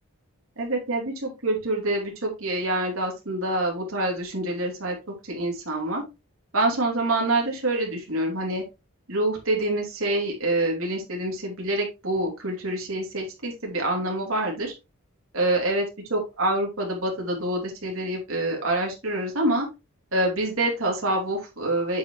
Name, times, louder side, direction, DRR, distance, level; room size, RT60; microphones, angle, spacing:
voice 1, 0.6-5.0 5.2-6.0 6.5-8.6 9.1-14.7 15.3-19.7 20.1-22.0, right 1 dB, 70° right, 0 dB, 3.0 m, -26 dB
8.4 x 6.1 x 3.2 m, 0.25 s
head